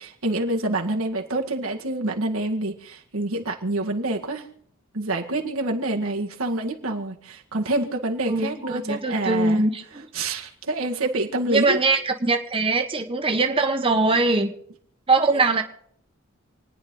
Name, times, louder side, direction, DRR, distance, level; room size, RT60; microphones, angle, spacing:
voice 1, 0.0-4.4 4.9-9.6 10.1-11.8, right 2 dB, 90° right, 2 dB, 1.9 m, -27 dB
voice 2, 8.3-10.1 11.5-14.5 15.1-15.6, right 3 dB, 25° right, 5 dB, 1.0 m, -22 dB
28.0 x 9.7 x 3.9 m, 0.66 s
head